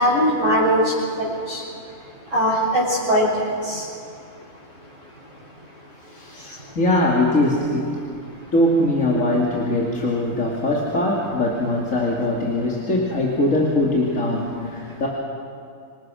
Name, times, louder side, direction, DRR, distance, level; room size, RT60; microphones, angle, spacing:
voice 1, 0.0-1.6 2.3-3.8, equal, 65° right, -9 dB, 6.0 m, -20 dB
voice 2, 6.1-8.0 8.5-15.1, left 1 dB, 75° left, -3 dB, 3.1 m, -21 dB
28.0 x 24.5 x 6.3 m, 2.4 s
omnidirectional pair, 1.4 m